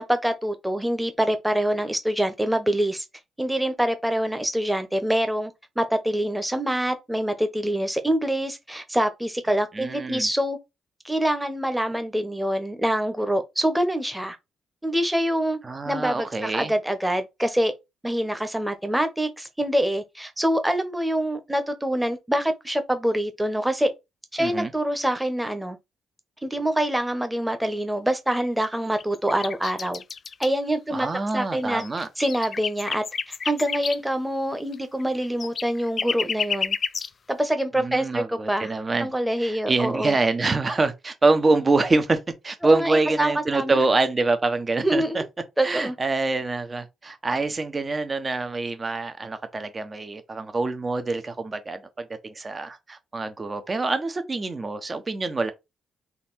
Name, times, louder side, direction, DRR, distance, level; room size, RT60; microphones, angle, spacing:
voice 1, 0.0-3.0 3.4-10.6 11.0-14.4 14.8-15.6 15.9-17.7 18.0-23.9 24.3-25.8 26.4-30.0 30.4-31.1 31.3-31.8 32.2-36.8 37.3-38.7 39.0-40.2 42.6-43.8 44.8-45.3 45.6-45.9, right 1 dB, 5° right, 1.2 m, -25 dB
voice 2, 9.7-10.3 15.6-16.7 24.4-24.7 30.9-32.1 37.8-39.1 39.4-45.2 45.6-55.5, right 3 dB, 30° right, 1.0 m, -25 dB
sound 1, 28.4-28.6 29.0-30.5 31.3-31.4 31.6-34.0 34.7-34.8 35.0-37.1, left 6 dB, 50° left, 0.4 m, -30 dB
4.1 x 2.7 x 4.2 m
cardioid pair, 75°, 0 cm